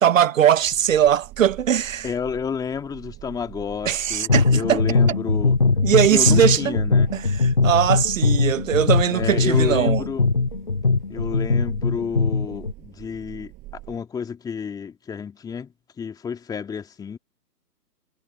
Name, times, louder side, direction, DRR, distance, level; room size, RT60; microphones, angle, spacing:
voice 1, 0.0-2.1 3.9-4.8 5.8-6.8 7.1-7.2 7.6-10.0, right 10 dB, 50° right, 0.9 m, -20 dB
sound 1, 0.6-14.0, right 19 dB, 20° right, 7.7 m, -43 dB
voice 2, 2.0-5.6 6.1-7.1 9.1-10.3 11.1-13.5 13.9-17.2, left 6 dB, 10° left, 2.6 m, -30 dB
sound 2, 4.3-12.7, left 4 dB, 35° left, 0.4 m, -21 dB
figure-of-eight pair, 135°, 49 cm